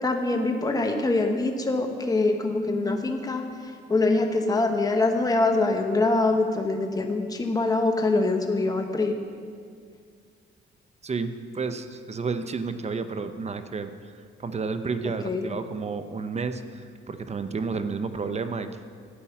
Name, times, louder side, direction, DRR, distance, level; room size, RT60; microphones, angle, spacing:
voice 1, 0.0-3.4 3.9-9.1 15.2-15.4, left 2 dB, 20° left, 3 dB, 1.1 m, -24 dB
voice 2, 11.0-14.1 14.4-16.8 17.1-18.7, right 4 dB, 35° right, 10 dB, 0.7 m, -31 dB
11.5 x 8.7 x 5.9 m, 2.1 s
cardioid pair, 90°, 20 cm